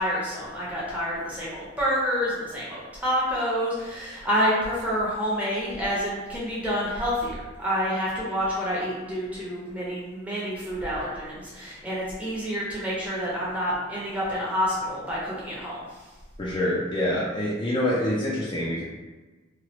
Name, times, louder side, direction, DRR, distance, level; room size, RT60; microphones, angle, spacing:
voice 1, 0.0-15.8, equal, 5° right, -7 dB, 0.7 m, -28 dB
voice 2, 16.4-18.8, left 1 dB, 25° left, -6 dB, 0.4 m, -26 dB
3.0 x 2.4 x 2.9 m, 1.2 s
head